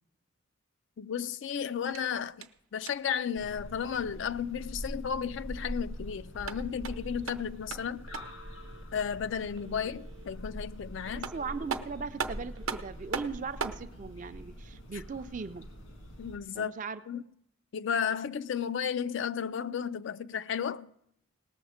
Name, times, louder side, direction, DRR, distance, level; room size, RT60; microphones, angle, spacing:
voice 1, 1.0-8.0 8.9-11.3 16.2-16.7 17.1-17.2 17.7-20.9, left 7 dB, 60° left, 0.3 m, -33 dB
sound 1, 1.8-3.2 6.2-8.5 10.8-10.9 11.2-13.9, right 5 dB, 90° right, 0.7 m, -39 dB
sound 2, 3.3-16.4, equal, 80° left, 1.8 m, -44 dB
Telephone, 6.9-7.6 8.0-8.8 9.5-10.3 10.8-11.8 12.5-12.9, right 3 dB, 60° right, 0.8 m, -56 dB
voice 2, 11.3-15.7 16.5-17.0, right 5 dB, 40° right, 0.4 m, -39 dB
18.5 x 7.0 x 5.0 m
head